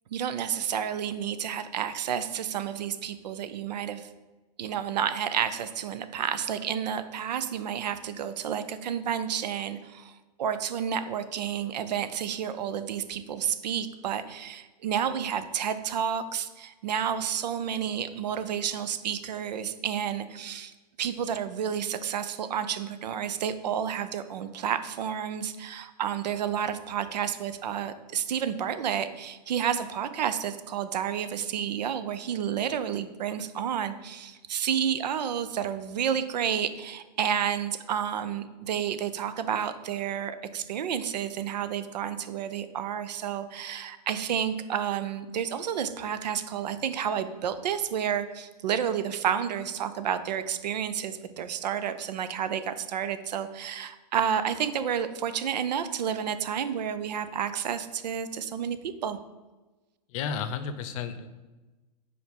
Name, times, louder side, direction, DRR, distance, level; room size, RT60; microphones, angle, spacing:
voice 1, 0.1-4.1 4.6-20.7 21.0-59.2, right 8 dB, 80° right, 12 dB, 0.6 m, -30 dB
voice 2, 60.1-61.3, left 6 dB, 50° left, 11 dB, 0.7 m, -32 dB
5.1 x 4.3 x 5.2 m, 1.2 s
hypercardioid pair, 130°, 21 cm